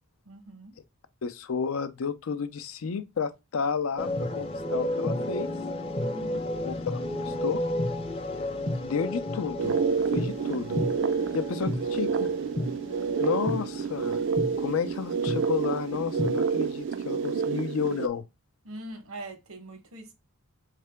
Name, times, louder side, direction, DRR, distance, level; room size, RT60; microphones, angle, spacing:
voice 1, 0.2-0.7 6.0-6.5 18.6-20.1, right 1 dB, 85° right, 0.9 m, -42 dB
voice 2, 1.2-5.5 6.6-7.6 8.8-9.8 10.1-10.8 11.3-12.3 13.2-14.2 14.6-18.3, left 6 dB, 75° left, 0.4 m, -31 dB
sound 1, 4.0-14.7 15.3-15.4 15.8-16.3, left 1 dB, 25° left, 0.5 m, -32 dB
sound 2, 9.6-18.1, right 6 dB, 60° right, 0.3 m, -29 dB
3.7 x 3.3 x 3.3 m
head